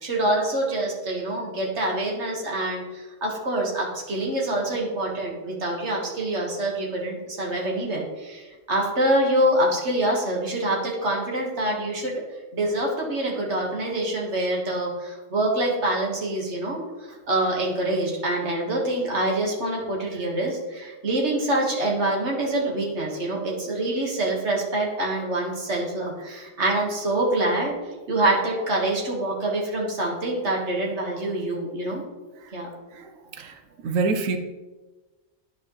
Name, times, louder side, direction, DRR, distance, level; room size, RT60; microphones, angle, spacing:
voice 1, 0.0-12.2 12.5-27.7 28.1-32.0 32.5-32.7, right 1 dB, 60° right, -2 dB, 1.9 m, -25 dB
voice 2, 32.9-34.4, right 3 dB, 80° right, 6 dB, 1.1 m, -27 dB
10.5 x 5.0 x 3.2 m, 1.2 s
omnidirectional pair, 1.4 m